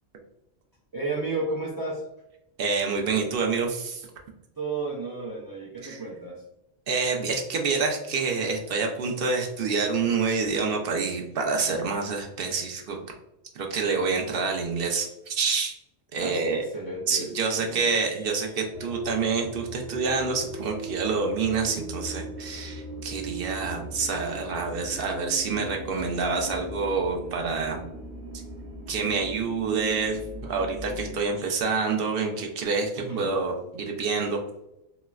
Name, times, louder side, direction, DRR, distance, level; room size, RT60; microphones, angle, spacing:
voice 1, 0.9-2.0 4.6-6.4 16.2-17.3 17.6-18.5 33.0-33.3, right 3 dB, 35° right, -3 dB, 0.3 m, -33 dB
voice 2, 2.6-4.1 5.8-6.0 6.9-13.0 13.6-15.8 16.1-16.6 17.1-27.8 28.9-34.4, right 4 dB, 65° right, 2 dB, 0.7 m, -27 dB
sound 1, 18.7-31.2, right 1 dB, 85° right, 1.0 m, -39 dB
4.0 x 2.0 x 2.3 m, 0.86 s
omnidirectional pair, 1.1 m